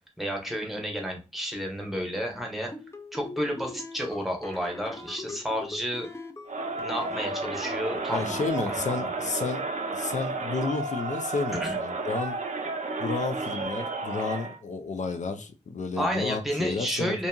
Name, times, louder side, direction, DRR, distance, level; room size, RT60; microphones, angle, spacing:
voice 1, 0.2-2.7 3.1-6.1 6.8-8.3 8.6-9.1 11.6-11.8 16.0-17.3, equal, ahead, 0.9 m, -31 dB
sound 1, 2.6-8.5, left 3 dB, 20° left, 0.4 m, -41 dB
Crowd, 6.5-14.6, right 3 dB, 80° right, 0.5 m, -32 dB
voice 2, 8.1-9.6 9.9-12.4 13.0-17.2, left 4 dB, 85° left, 0.4 m, -31 dB
2.7 x 2.6 x 2.2 m
wide cardioid pair, 70°, 12 cm